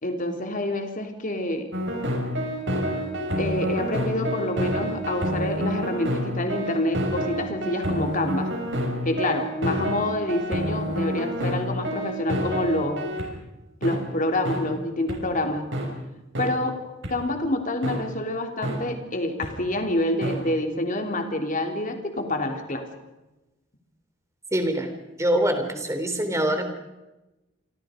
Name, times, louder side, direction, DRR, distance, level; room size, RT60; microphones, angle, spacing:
voice 1, 0.0-1.7 3.4-8.5 9.0-13.1 13.8-15.6 16.4-16.8 17.1-22.9, left 1 dB, 40° left, 5 dB, 3.3 m, -27 dB
sound 1, 1.7-13.3 13.8-14.0 14.4-14.6 15.1-15.2 15.7-15.9 16.3-16.5 17.0-17.1 17.8-18.0 18.6-18.8 19.4-19.5 20.2-20.3, equal, 65° right, 6.1 m, -28 dB
voice 2, 24.5-24.9 25.2-26.7, right 1 dB, 15° right, 6 dB, 3.7 m, -24 dB
28.5 x 25.0 x 5.2 m, 1.0 s
head